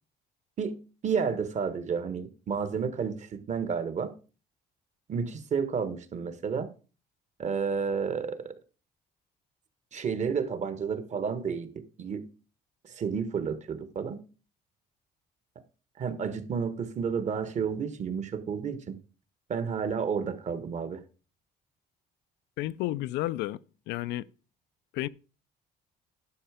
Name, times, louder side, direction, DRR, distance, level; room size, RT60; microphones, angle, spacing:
voice 1, 0.6-4.1 5.1-6.7 7.4-8.5 9.9-12.3 12.8-14.2 16.0-19.0 19.5-21.0, right 6 dB, 45° right, 1.4 m, -31 dB
voice 2, 22.6-23.6 23.9-24.3 24.9-25.1, left 16 dB, 85° left, 0.5 m, -31 dB
11.5 x 5.7 x 5.0 m
cardioid pair, 110°, 17 cm